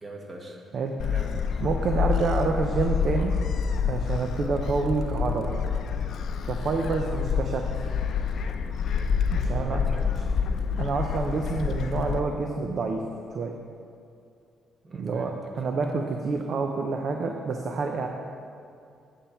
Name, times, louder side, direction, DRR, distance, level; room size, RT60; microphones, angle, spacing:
voice 1, 0.0-0.6 1.1-1.6 9.4-10.1 14.8-15.4, equal, 35° right, 1 dB, 1.5 m, -41 dB
Gull seagull, 1.0-12.2, left 6 dB, 65° left, 0.6 m, -27 dB
voice 2, 1.6-3.3 3.8-5.5 6.4-7.6 9.3-9.8 10.1-10.2 10.8-13.0 13.3-13.5 14.9-18.1, right 4 dB, 55° right, 3 dB, 0.6 m, -28 dB
8.8 x 7.1 x 4.4 m, 2.5 s
cardioid pair, 90°, 0 cm